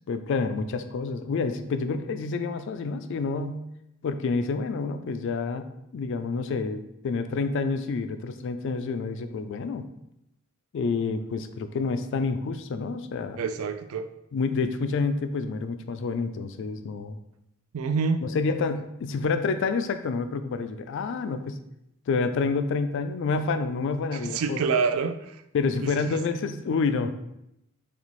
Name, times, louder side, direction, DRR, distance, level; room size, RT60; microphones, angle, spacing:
voice 1, 0.1-3.6 4.0-9.9 10.7-13.4 14.3-17.2 18.2-21.6 22.1-24.6 25.5-27.2, left 4 dB, 60° left, 9 dB, 0.3 m, -28 dB
voice 2, 13.4-14.1 17.7-18.3 24.1-25.3 25.8-25.9, right 5 dB, 80° right, 9 dB, 0.4 m, -27 dB
4.1 x 3.4 x 3.1 m, 0.83 s
head